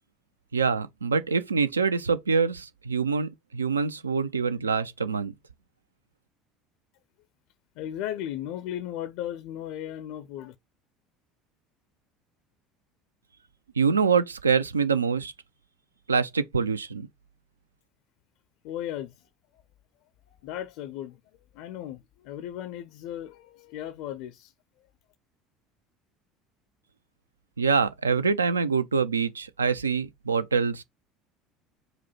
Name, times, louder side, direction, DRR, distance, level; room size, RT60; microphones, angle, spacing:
voice 1, 0.5-5.3 13.8-15.3 16.1-17.1 27.6-30.8, right 5 dB, 85° right, 0.3 m, -25 dB
voice 2, 7.8-10.6 18.6-19.6 20.4-21.2 21.5-24.5, left 11 dB, 60° left, 0.4 m, -36 dB
4.8 x 2.1 x 4.1 m
figure-of-eight pair, 65°, 0 cm